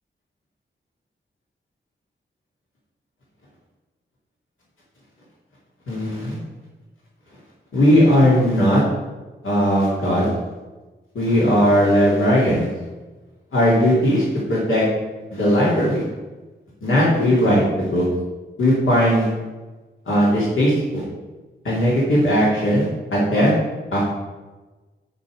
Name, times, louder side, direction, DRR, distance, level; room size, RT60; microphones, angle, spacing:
voice 1, 5.9-6.4 7.7-8.8 9.4-10.3 11.1-12.7 13.5-14.2 14.5-14.9 15.3-16.0 16.8-18.0 18.6-19.3 20.1-21.0 21.6-23.5 23.9-24.1, equal, 90° left, -6 dB, 2.6 m, -18 dB
6.9 x 5.7 x 6.3 m, 1.2 s
wide cardioid pair, 80°, 20 cm